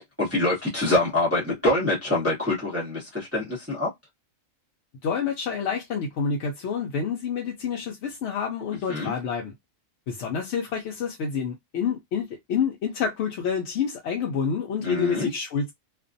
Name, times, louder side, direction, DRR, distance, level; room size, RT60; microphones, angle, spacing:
voice 1, 0.2-3.9 8.9-9.1 14.8-15.3, left 2 dB, 15° right, 0.8 m, -25 dB
voice 2, 5.0-9.5 10.1-15.7, left 6 dB, 65° left, 0.8 m, -28 dB
2.4 x 2.1 x 2.6 m
omnidirectional pair, 1.4 m